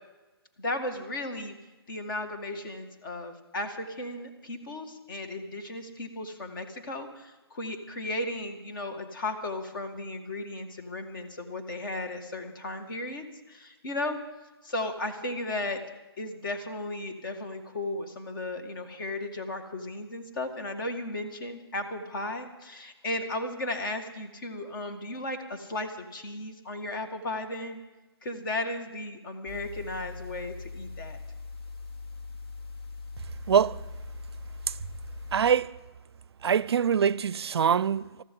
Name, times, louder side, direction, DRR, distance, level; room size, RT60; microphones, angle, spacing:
voice 1, 0.6-1.5 1.9-14.2 14.6-15.8 16.2-27.8 28.2-31.2, left 2 dB, 55° left, 2.1 m, -35 dB
sound 1, 29.5-35.4, left 3 dB, 70° left, 2.4 m, -41 dB
voice 2, 33.5-33.9 34.7-34.8 35.3-35.8 36.4-38.2, right 7 dB, 75° right, 0.4 m, -24 dB
20.5 x 14.0 x 3.8 m
hypercardioid pair, 155°, 13 cm